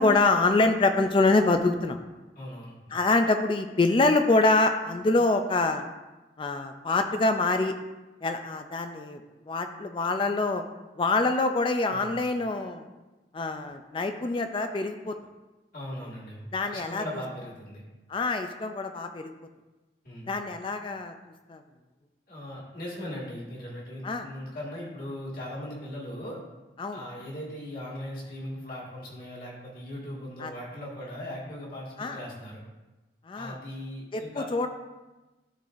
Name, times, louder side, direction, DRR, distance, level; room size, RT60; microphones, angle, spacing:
voice 1, 0.0-2.0 2.9-5.8 6.4-7.7 8.2-9.2 9.5-10.6 11.0-12.8 13.3-15.1 16.5-17.0 18.1-19.3 20.3-21.1 21.5-21.6 24.0-24.3 26.8-27.0 30.4-30.5 32.0-32.2 33.3-33.6 34.1-34.7, left 3 dB, 30° left, 7 dB, 0.3 m, -25 dB
voice 2, 2.4-2.9 11.9-12.1 15.7-17.8 20.0-20.3 22.3-26.4 26.9-32.6 33.3-34.5, left 1 dB, 55° left, -5 dB, 1.9 m, -39 dB
11.0 x 4.0 x 2.5 m, 1.1 s
head